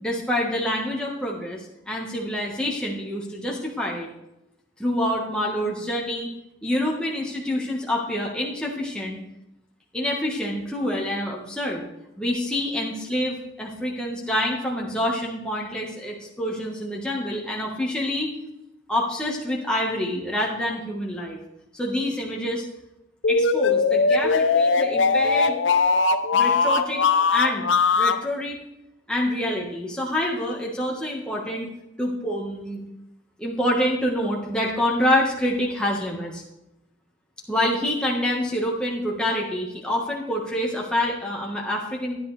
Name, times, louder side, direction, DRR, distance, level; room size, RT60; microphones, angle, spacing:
voice 1, 0.0-4.1 4.8-6.3 6.6-9.2 9.9-11.8 12.2-18.3 18.9-21.4 21.7-22.6 23.3-25.5 26.3-27.0 27.3-27.7 28.0-28.6 29.1-31.7 32.0-32.8 33.4-36.4 37.5-42.2, left 1 dB, 5° left, -3 dB, 1.4 m, -27 dB
sound 1, 23.2-28.2, left 4 dB, 90° left, 0.7 m, -20 dB
13.5 x 10.5 x 3.3 m, 0.88 s
head